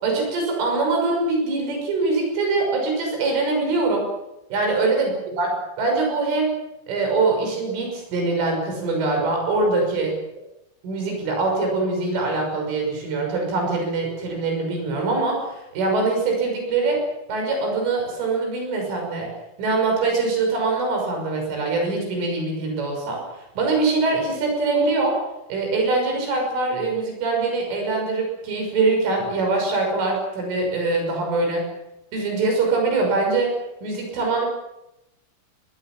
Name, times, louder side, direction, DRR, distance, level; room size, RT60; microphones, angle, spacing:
voice 1, 0.0-4.1 4.5-5.1 5.4-5.5 5.8-6.5 6.9-10.1 10.8-17.0 17.3-19.3 19.6-23.2 23.6-25.2 25.5-31.7 32.1-34.5, right 3 dB, 70° right, 2 dB, 8.5 m, -23 dB
24.5 x 20.0 x 7.6 m, 0.89 s
omnidirectional pair, 5.9 m